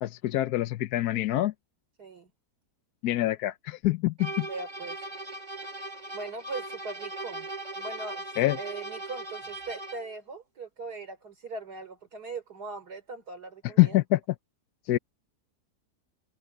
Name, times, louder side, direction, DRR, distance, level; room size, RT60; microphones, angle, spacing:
voice 1, 0.0-1.5 3.0-4.5 8.4-8.6 13.8-14.2 14.9-15.0, left 16 dB, 75° left, 1.1 m, -25 dB
voice 2, 2.0-2.3 4.4-5.0 6.1-7.5 7.8-8.3 8.6-14.0, right 3 dB, 75° right, 3.9 m, -40 dB
sound 1, 4.2-10.1, right 2 dB, 25° right, 2.4 m, -39 dB
omnidirectional pair, 1.7 m